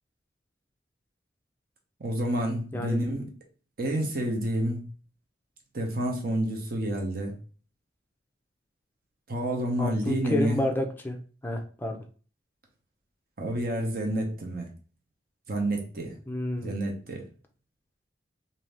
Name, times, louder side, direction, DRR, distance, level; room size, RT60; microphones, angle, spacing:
voice 1, 2.0-3.3 3.8-4.9 5.7-7.4 9.3-10.7 13.4-14.7 15.5-16.2 16.6-17.2, right 1 dB, 55° right, 0.8 m, -29 dB
voice 2, 9.8-11.2 11.4-12.0 16.3-16.8, left 1 dB, 10° left, 0.4 m, -30 dB
2.7 x 2.7 x 3.3 m
head